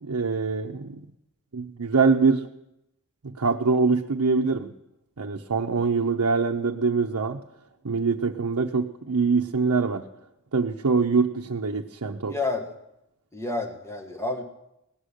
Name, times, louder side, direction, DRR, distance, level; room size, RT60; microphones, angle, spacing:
voice 1, 0.0-1.1 1.5-2.5 3.2-4.7 5.2-7.4 7.8-10.1 10.5-12.3, right 4 dB, 90° right, 1 dB, 0.7 m, -24 dB
voice 2, 12.3-12.6 13.3-14.4, left 3 dB, 10° left, 2 dB, 1.6 m, -29 dB
17.5 x 6.5 x 9.9 m, 0.87 s
head